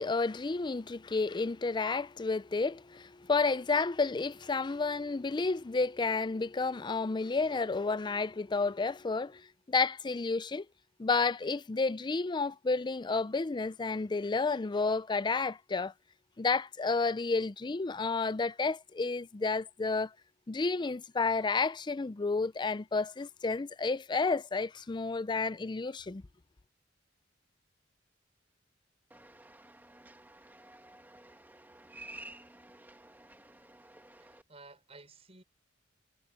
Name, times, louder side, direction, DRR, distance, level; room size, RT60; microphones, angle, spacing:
voice 1, 0.0-10.7 11.0-15.9 16.4-20.1 20.5-26.2, left 4 dB, 25° left, 0.4 m, -31 dB
sound 1, 29.1-34.4, right 2 dB, 10° right, 2.0 m, -52 dB
voice 2, 34.2-35.4, right 3 dB, 35° right, 5.6 m, -54 dB
head